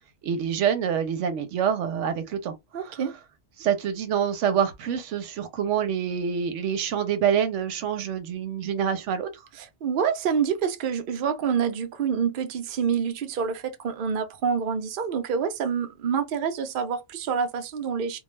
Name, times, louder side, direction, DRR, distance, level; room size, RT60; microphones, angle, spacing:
voice 1, 0.2-2.5 2.8-3.0 3.6-9.3, right 8 dB, 85° right, 1.0 m, -26 dB
voice 2, 2.7-3.1 9.5-18.2, right 7 dB, 55° right, 0.6 m, -27 dB
2.3 x 2.2 x 3.0 m
omnidirectional pair, 1.2 m